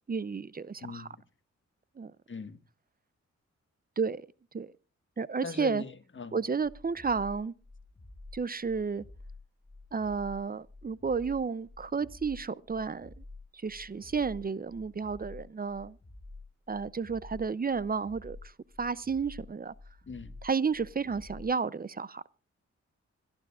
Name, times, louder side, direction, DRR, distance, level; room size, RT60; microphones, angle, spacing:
voice 1, 0.1-1.1 2.0-2.1 4.0-4.3 4.5-4.7 5.2-5.8 6.3-7.5 8.3-9.0 9.9-13.2 13.5-16.0 16.7-18.5 18.8-19.7 20.4-22.2, right 5 dB, 30° right, 0.5 m, -32 dB
voice 2, 0.8-1.2 2.3-2.6 5.4-6.4 20.1-20.4, left 4 dB, 40° left, 1.5 m, -40 dB
sound 1, 6.6-21.5, left 2 dB, 20° left, 1.5 m, -50 dB
25.5 x 12.5 x 2.4 m
cardioid pair, 70°, 29 cm